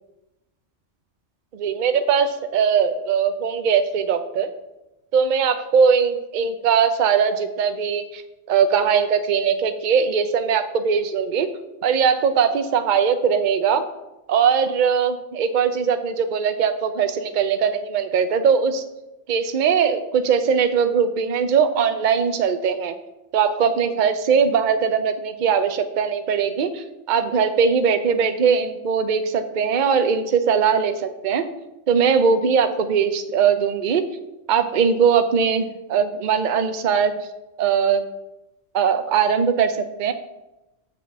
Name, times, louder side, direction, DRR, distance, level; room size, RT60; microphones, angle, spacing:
voice 1, 1.5-4.5 5.1-8.2 8.5-11.5 11.8-13.8 14.3-18.8 19.3-22.9 23.3-31.5 31.9-34.0 34.5-37.1 37.6-38.0 38.7-40.1, right 6 dB, 50° right, 9 dB, 0.7 m, -20 dB
6.3 x 6.0 x 7.0 m, 0.98 s
omnidirectional pair, 1.2 m